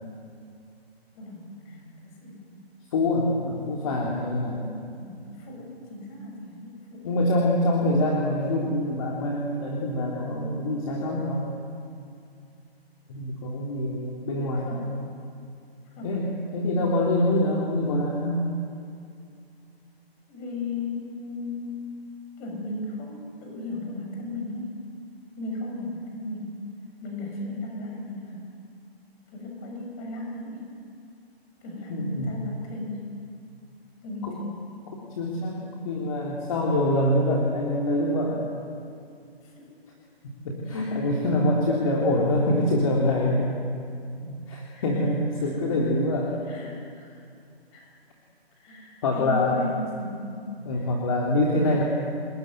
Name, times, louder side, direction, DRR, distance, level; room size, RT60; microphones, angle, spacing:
voice 1, 1.1-2.6 5.0-7.2 14.6-14.9 15.9-16.2 20.3-21.9 22.4-24.8 25.4-26.6 27.0-28.5 29.3-30.7 31.6-33.1 34.0-34.7 39.4-39.7 44.7-44.8 45.4-45.6 46.3-47.2 47.7-47.9 48.5-50.4 50.7-50.9, left 2 dB, 20° left, 1 dB, 6.7 m, -36 dB
voice 2, 2.9-4.7 7.0-11.5 13.1-15.0 16.0-18.5 31.9-32.3 34.2-34.3 35.2-38.5 40.4-43.6 44.2-46.3 49.0-49.6 50.6-51.8, left 1 dB, 35° left, -2 dB, 3.4 m, -25 dB
29.0 x 20.5 x 9.6 m, 2.4 s
hypercardioid pair, 160°, 31 cm